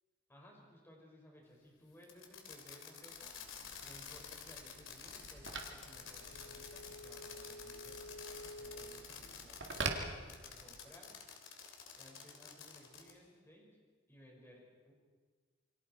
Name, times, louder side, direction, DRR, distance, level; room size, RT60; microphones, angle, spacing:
voice 1, 0.3-3.3 3.8-8.1 8.6-10.1 10.6-11.2 11.9-13.8 14.1-14.9, equal, 15° left, -1 dB, 5.3 m, -60 dB
Fireworks, 2.0-9.9 10.3-13.2, left 6 dB, 85° left, 3.0 m, -50 dB
Telephone, 3.0-10.9, right 3 dB, 65° right, 2.3 m, -46 dB
28.0 x 24.0 x 4.5 m, 1.5 s
head